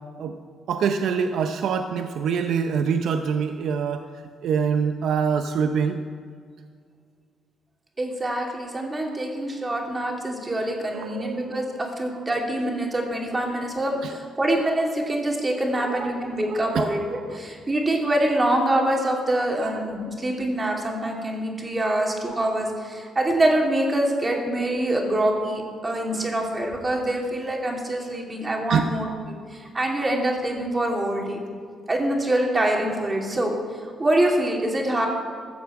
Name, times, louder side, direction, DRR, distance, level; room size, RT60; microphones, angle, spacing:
voice 1, 0.7-4.1 4.4-6.0 10.9-11.6 14.0-14.1 15.7-17.4 19.6-19.7 22.0-22.2 25.9-26.0 28.7-28.8, right 6 dB, 75° right, 7 dB, 0.6 m, -25 dB
voice 2, 8.0-17.0 17.3-31.4 31.9-33.5 34.0-35.1, right 1 dB, 25° right, 0 dB, 2.8 m, -25 dB
14.5 x 7.2 x 7.6 m, 2.1 s
cardioid pair, 90°, 0 cm